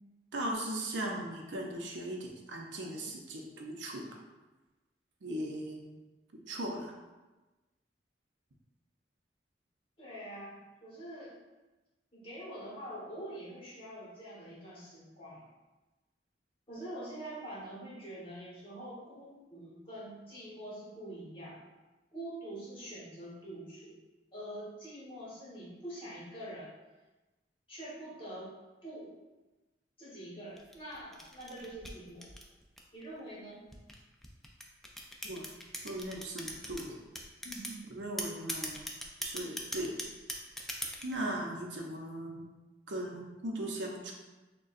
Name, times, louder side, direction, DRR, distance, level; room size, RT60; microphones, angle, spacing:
voice 1, 0.3-4.1 5.2-6.0 6.3-6.9 35.2-35.5 35.8-37.0 37.9-38.8 39.2-40.0 41.0-42.5 42.9-44.1, right 1 dB, 85° right, 0 dB, 0.7 m, -38 dB
voice 2, 10.0-11.3 12.1-15.5 16.7-21.6 22.1-23.9 24.3-26.7 27.7-28.5 28.8-29.1 30.0-32.3 32.9-33.6 37.4-37.8, right 1 dB, 30° left, -7 dB, 1.3 m, -45 dB
sound 1, 30.6-33.0 33.7-36.8 37.2-37.8 38.2-41.2, equal, ahead, 0.3 m, -40 dB
6.4 x 2.2 x 2.5 m, 1.1 s
head